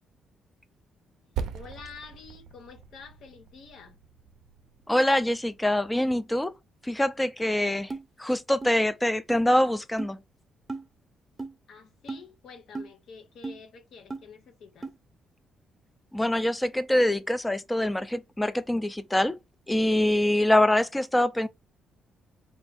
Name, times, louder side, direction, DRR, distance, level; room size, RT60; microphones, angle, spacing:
voice 1, 1.2-4.0 11.7-14.9, left 5 dB, 70° left, 0.9 m, -48 dB
Percussion, 1.4-6.2, right 7 dB, 80° right, 0.4 m, -41 dB
voice 2, 4.9-6.5 6.8-7.9 8.2-10.2 16.1-19.4 19.7-21.5, left 1 dB, 10° left, 0.4 m, -24 dB
sound 1, 7.9-8.0 8.6-8.7 9.3-9.4 10.0-10.1 10.7-10.8 11.4-11.5 12.1-12.2 12.7-12.9 13.4-13.6 14.1-14.2 14.8-14.9, right 3 dB, 15° right, 0.7 m, -35 dB
3.4 x 2.5 x 3.4 m
cardioid pair, 90°, 0 cm